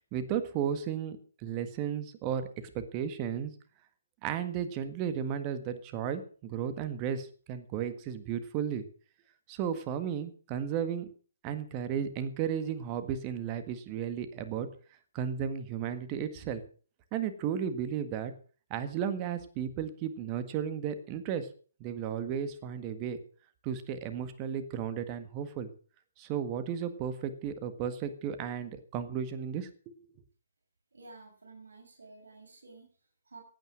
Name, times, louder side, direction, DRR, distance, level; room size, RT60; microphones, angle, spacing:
voice 1, 0.1-2.5 2.7-3.5 4.2-8.8 9.5-11.1 11.4-14.7 15.1-16.6 17.1-18.3 18.7-21.5 21.8-23.2 23.6-25.7 26.2-29.9, right 8 dB, 25° right, 11 dB, 1.6 m, -34 dB
voice 2, 30.9-33.4, right 3 dB, 75° right, 1 dB, 6.5 m, -52 dB
16.0 x 9.2 x 6.3 m, 0.41 s
hypercardioid pair, 145°, 0 cm